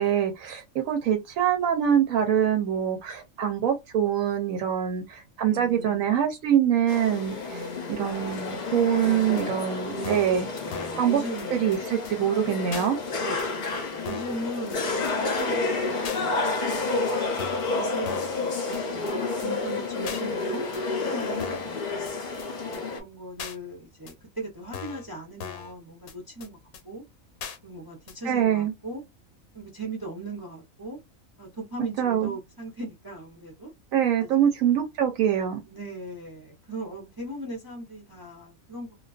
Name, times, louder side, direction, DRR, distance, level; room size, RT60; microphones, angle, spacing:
voice 1, 0.0-7.4 7.9-10.5 11.0-11.2 11.5-13.0 28.2-28.7 32.0-32.3 33.9-35.6, right 9 dB, 75° right, 1.0 m, -24 dB
voice 2, 5.4-6.3 7.5-9.6 9.9-11.7 13.2-17.3 17.7-20.8 21.0-26.6 26.8-27.0 27.6-29.0 29.5-31.0 31.4-33.7 34.2-34.5 35.6-38.9, right 2 dB, 25° right, 0.5 m, -39 dB
sound 1, 6.9-23.0, left 3 dB, 45° left, 0.6 m, -30 dB
sound 2, 9.4-9.5 10.0-10.4 10.7-11.0 11.4-11.5 11.7-11.8 12.1-12.2 12.7-12.9 13.4-13.5 14.1-14.4 14.7-14.8 15.1-15.2 15.4-15.5 16.0-16.2 16.7-16.8 17.4-17.7 18.1-18.4 18.7-18.8 19.1-19.2 19.4-19.5 20.1-20.2 20.7-20.8 21.4-21.7 22.1-22.2 22.4-22.5 22.7-22.8 23.4-23.6 24.1-24.2 24.7-25.1 25.4-25.7 26.1-26.2 26.4-26.5 26.7-26.8 27.4-27.6 28.1-28.2, left 7 dB, 80° left, 1.0 m, -39 dB
2.3 x 2.3 x 2.3 m
omnidirectional pair, 1.5 m